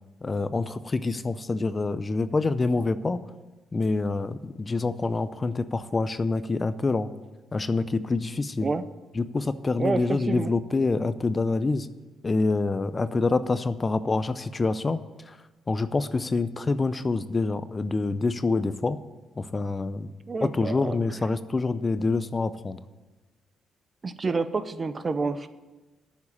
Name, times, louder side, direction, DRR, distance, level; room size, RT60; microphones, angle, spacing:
voice 1, 0.2-3.2 3.7-7.1 7.5-8.7 9.2-11.9 12.2-15.0 15.3-15.4 15.7-19.0 19.4-20.1 20.4-22.8, left 3 dB, 25° left, 13 dB, 0.5 m, -26 dB
voice 2, 9.8-10.5 20.3-21.0 24.0-25.5, right 4 dB, 35° right, 12 dB, 0.7 m, -28 dB
9.4 x 7.3 x 8.6 m, 1.2 s
cardioid pair, 90°, 0 cm